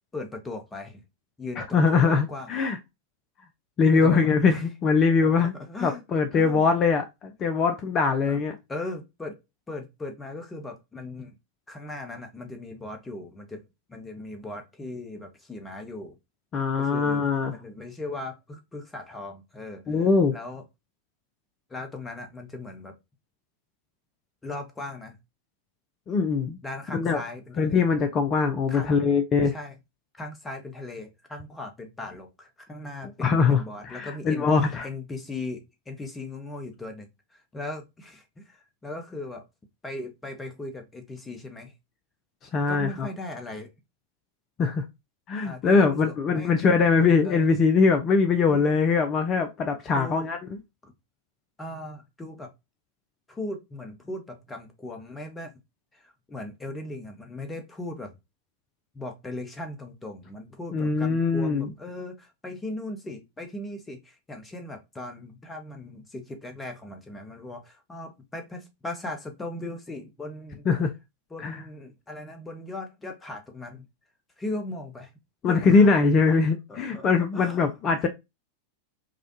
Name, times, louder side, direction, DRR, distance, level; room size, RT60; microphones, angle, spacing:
voice 1, 0.1-1.0 1.4-2.5 3.8-4.6 5.2-6.7 8.2-8.4 8.7-9.4 9.7-11.4 11.7-13.6 13.9-16.2 16.8-20.6 21.7-22.9 24.4-25.2 26.6-27.9 28.7-29.0 29.5-29.8 30.1-34.5 34.8-39.5 39.8-41.7 42.7-43.7 45.4-46.7 47.2-47.5 48.4-48.6 49.9-50.3 50.8-50.9 51.6-52.5 53.3-55.5 55.9-58.1 58.9-70.6 71.3-73.9 74.4-75.1 75.5-76.0 76.2-76.4 76.7-77.7 78.0-78.1, left 2 dB, 15° left, 1.0 m, -38 dB
voice 2, 1.6-2.8 3.8-5.5 5.8-8.5 16.5-17.5 19.9-20.3 26.1-26.6 26.9-27.2 27.6-29.5 33.2-34.9 42.5-43.1 44.6-44.8 45.3-50.4 60.7-61.7 70.7-70.9 71.4-71.6 75.4-78.1, left 4 dB, 30° left, 0.5 m, -22 dB
4.9 x 2.3 x 2.8 m
figure-of-eight pair, 90°, 0 cm